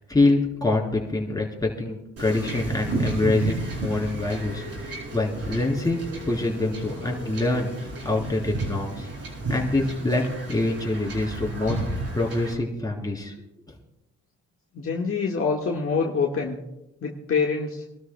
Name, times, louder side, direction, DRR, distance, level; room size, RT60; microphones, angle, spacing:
voice 1, 0.1-6.0 6.2-9.1 9.5-11.8 12.1-13.3 13.7-13.8, left 2 dB, 10° left, -2 dB, 3.6 m, -25 dB
Wind / Ocean / Boat Water vehicle, 2.2-12.5, right 2 dB, 55° right, 5.8 m, -32 dB
voice 2, 14.7-16.6 17.0-17.8, left 5 dB, 45° left, -1 dB, 1.6 m, -25 dB
27.0 x 13.0 x 2.2 m, 0.91 s
cardioid pair, 90°, 30 cm